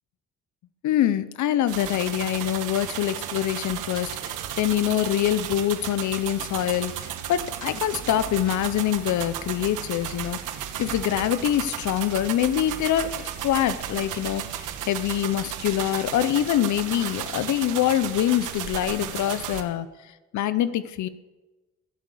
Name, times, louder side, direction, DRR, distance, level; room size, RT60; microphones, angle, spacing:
voice 1, 0.8-10.4 10.8-21.1, left 11 dB, 70° left, 14 dB, 0.7 m, -25 dB
sound 1, 1.7-19.6, right 10 dB, 90° right, 1.3 m, -34 dB
15.5 x 7.8 x 8.3 m, 1.2 s
cardioid pair, 90°, 30 cm